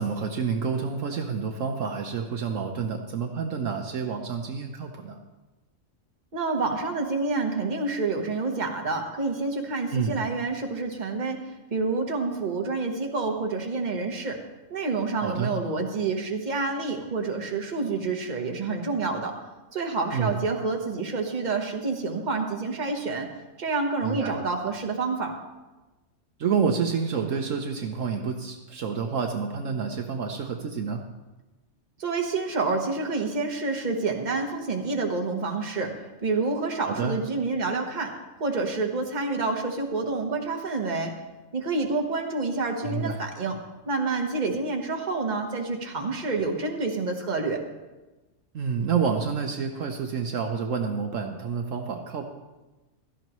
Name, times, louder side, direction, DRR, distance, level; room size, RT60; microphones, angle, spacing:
voice 1, 0.0-5.2 9.9-10.2 15.2-15.5 20.1-20.4 24.0-24.3 26.4-31.0 36.8-37.2 42.8-43.2 48.5-52.3, right 6 dB, 65° right, 4 dB, 1.2 m, -28 dB
voice 2, 6.3-11.4 11.7-14.4 14.7-19.3 19.7-23.3 23.6-25.3 32.0-35.9 36.2-38.1 38.4-41.1 41.5-43.6 43.9-47.6, right 3 dB, 35° right, 2 dB, 1.4 m, -28 dB
16.0 x 13.0 x 3.1 m, 1.1 s
omnidirectional pair, 1.5 m